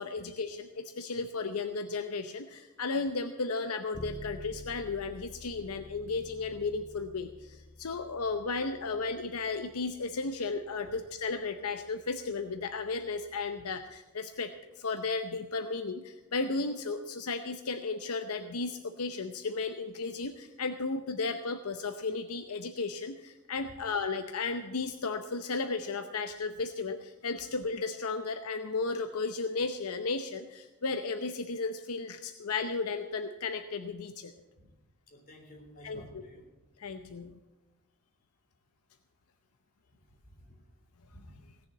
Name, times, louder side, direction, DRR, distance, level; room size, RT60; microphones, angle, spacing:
voice 1, 0.0-34.3 35.8-36.2 36.8-37.4, left 4 dB, 80° left, 8 dB, 0.7 m, -34 dB
Bass guitar, 3.9-13.7, left 1 dB, 15° left, 0.8 m, -51 dB
voice 2, 35.1-36.4 40.3-40.6 41.1-41.2, equal, 40° left, 1 dB, 3.5 m, -52 dB
17.5 x 7.1 x 8.8 m, 1.1 s
head